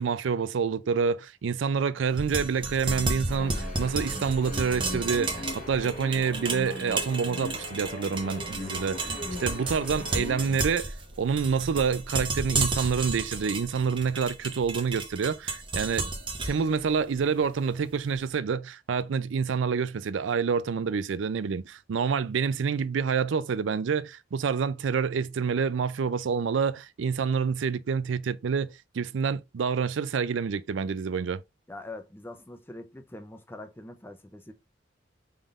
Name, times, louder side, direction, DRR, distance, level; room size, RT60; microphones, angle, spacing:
voice 1, 0.0-16.1 16.4-31.4, right 6 dB, 80° right, 0.4 m, -28 dB
sound 1, 2.1-18.2, right 3 dB, 25° right, 1.0 m, -33 dB
sound 2, 3.2-10.7, left 1 dB, 40° left, 1.1 m, -39 dB
voice 2, 31.7-34.5, left 2 dB, 10° left, 0.6 m, -43 dB
5.2 x 3.7 x 2.5 m
head